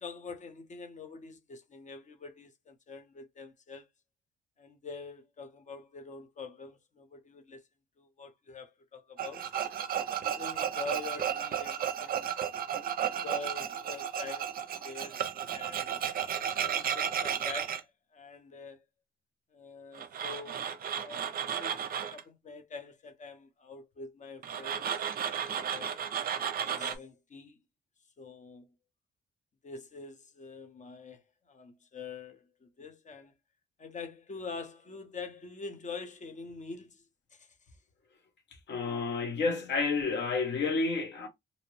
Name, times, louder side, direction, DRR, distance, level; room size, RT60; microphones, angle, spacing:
voice 1, 0.0-3.9 4.6-7.6 8.0-9.5 10.2-12.3 13.0-14.6 14.8-15.1 15.5-16.0 16.6-17.9 18.1-18.8 19.5-21.3 21.6-21.8 22.1-25.0 25.3-25.9 26.6-27.6 28.2-28.7 29.6-31.2 31.5-33.3 33.8-37.0 37.3-37.5, left 4 dB, 40° left, 0.8 m, -45 dB
Tools, 9.2-17.8 19.9-22.2 24.4-27.0, right 8 dB, 50° right, 0.5 m, -33 dB
voice 2, 38.7-41.3, left 4 dB, 60° left, 1.1 m, -30 dB
2.7 x 2.1 x 3.1 m
cardioid pair, 90°, 20 cm